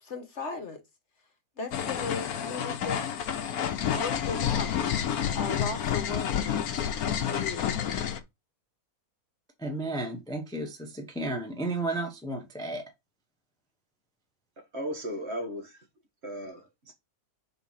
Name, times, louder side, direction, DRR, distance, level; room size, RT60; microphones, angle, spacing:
voice 1, 0.0-0.8 1.6-3.2 3.9-4.7 5.3-6.7 7.2-7.8, left 4 dB, 55° left, 1.2 m, -36 dB
sound 1, 1.7-8.2, left 9 dB, 85° left, 1.2 m, -29 dB
voice 2, 9.6-12.8, right 2 dB, 5° left, 0.8 m, -33 dB
voice 3, 14.6-15.8 16.2-16.9, equal, 50° right, 1.6 m, -36 dB
4.5 x 4.0 x 5.6 m
omnidirectional pair, 1.6 m